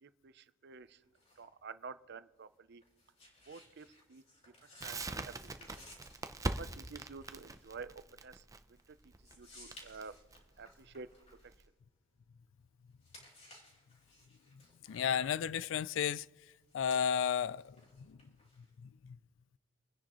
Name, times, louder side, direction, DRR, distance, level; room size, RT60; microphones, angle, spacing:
voice 1, 0.0-1.0 1.4-2.8 3.5-4.5 4.8-5.3 5.6-5.8 6.4-9.0 9.4-10.1 10.6-11.1, right 4 dB, 60° right, 0.6 m, -50 dB
sound 1, 0.7-12.5 12.8-18.9, left 1 dB, 35° left, 4.7 m, -60 dB
Crackle, 4.8-11.6, right 2 dB, 15° right, 0.6 m, -42 dB
voice 2, 14.9-16.3 16.7-18.2 19.0-19.2, left 8 dB, 70° left, 0.4 m, -33 dB
29.0 x 10.0 x 3.0 m
head